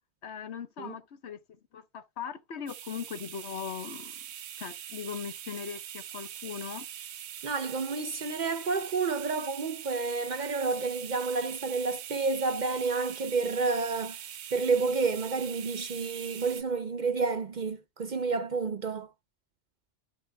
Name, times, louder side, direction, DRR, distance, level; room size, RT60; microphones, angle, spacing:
voice 1, 0.2-4.2 4.6-6.9, left 7 dB, 70° left, 1.2 m, -39 dB
sound 1, 2.7-16.6, right 10 dB, 70° right, 0.9 m, -43 dB
voice 2, 7.4-14.2 14.5-19.1, right 4 dB, 50° right, 0.7 m, -30 dB
12.0 x 6.0 x 2.2 m
omnidirectional pair, 1.2 m